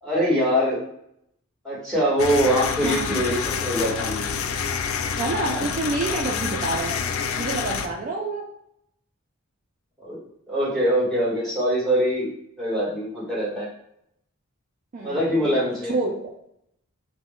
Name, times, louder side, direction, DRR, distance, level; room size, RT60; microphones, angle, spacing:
voice 1, 0.0-0.8 1.6-4.3 5.3-5.6 10.0-10.2 10.5-12.3 12.6-13.7 15.0-15.9, equal, ahead, -7 dB, 1.1 m, -23 dB
sound 1, 2.2-7.9, left 6 dB, 70° left, 0.3 m, -27 dB
voice 2, 2.8-3.2 5.2-7.0 7.4-8.5 14.9-15.5 15.8-16.3, right 2 dB, 40° right, -1 dB, 0.3 m, -28 dB
2.3 x 2.1 x 3.6 m, 0.75 s
head